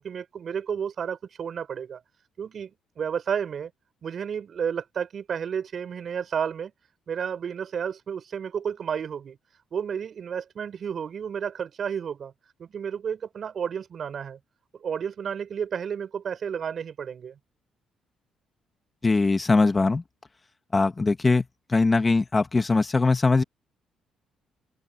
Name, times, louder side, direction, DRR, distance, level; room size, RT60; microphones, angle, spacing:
voice 1, 0.0-2.0 2.4-3.7 4.0-6.7 7.1-9.4 9.7-12.3 12.6-14.4 14.7-17.4, right 7 dB, 50° right, 5.5 m, -31 dB
voice 2, 19.0-20.0 20.7-23.4, left 3 dB, 25° left, 1.9 m, -21 dB
cardioid pair, 100°, 0 cm